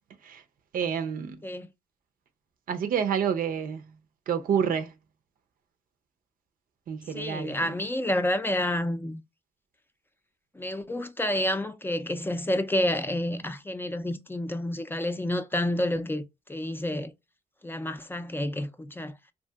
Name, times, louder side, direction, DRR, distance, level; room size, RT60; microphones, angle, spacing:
voice 1, 0.7-1.4 2.7-3.9 4.3-4.9 6.9-7.5, right 7 dB, 75° right, 0.5 m, -28 dB
voice 2, 7.1-9.2 10.5-17.1 17.6-19.1, left 1 dB, 15° left, 0.4 m, -29 dB
2.8 x 2.6 x 2.3 m
cardioid pair, 75°, 14 cm